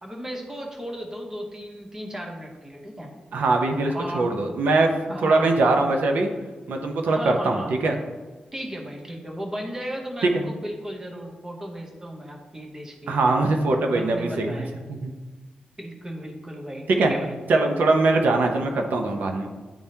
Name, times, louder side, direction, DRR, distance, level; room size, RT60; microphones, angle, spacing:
voice 1, 0.0-3.1 3.9-4.3 5.1-5.5 7.0-7.7 8.5-13.1 13.9-14.7 15.8-17.4, equal, 15° right, 1 dB, 0.9 m, -35 dB
voice 2, 3.3-4.9 5.2-6.3 6.7-8.0 10.3-10.4 13.1-14.6 15.0-15.1 17.0-17.1 17.5-19.5, right 2 dB, 85° right, 4 dB, 0.7 m, -22 dB
10.0 x 3.5 x 2.8 m, 1.3 s
wide cardioid pair, 155°, 3 cm